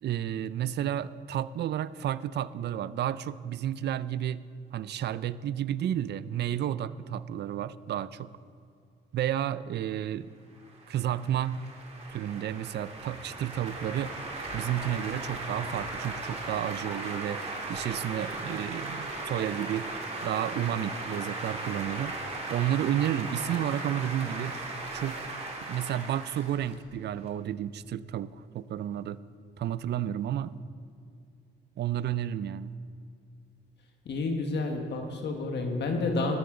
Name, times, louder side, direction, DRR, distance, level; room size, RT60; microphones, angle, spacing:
voice 1, 0.0-4.4 4.7-8.3 9.1-10.3 10.9-11.6 12.1-14.1 14.5-19.9 20.2-22.1 22.5-24.5 24.9-25.3 25.6-29.2 29.6-30.5 31.8-32.7, right 11 dB, 60° right, 17 dB, 0.4 m, -31 dB
sound 1, 10.6-27.3, right 2 dB, 30° right, 2.4 m, -37 dB
voice 2, 34.0-36.4, left 3 dB, 60° left, 3 dB, 1.5 m, -30 dB
13.0 x 12.5 x 3.8 m, 2.4 s
cardioid pair, 90°, 20 cm